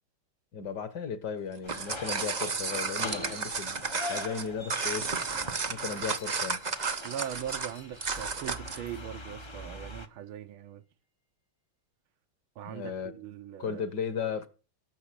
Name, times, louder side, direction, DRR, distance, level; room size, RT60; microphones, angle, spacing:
voice 1, 0.5-5.1 5.7-6.6 12.6-13.1 13.6-14.5, left 6 dB, 55° left, 1.8 m, -36 dB
sound 1, 1.5-8.9, right 5 dB, 50° right, 0.5 m, -33 dB
sound 2, 1.6-10.1, left 2 dB, 25° left, 0.6 m, -43 dB
sound 3, 6.0-10.2, left 4 dB, 75° left, 3.3 m, -58 dB
voice 2, 7.0-10.8 12.6-13.8, right 10 dB, 80° right, 1.7 m, -40 dB
17.5 x 6.9 x 6.8 m
omnidirectional pair, 2.3 m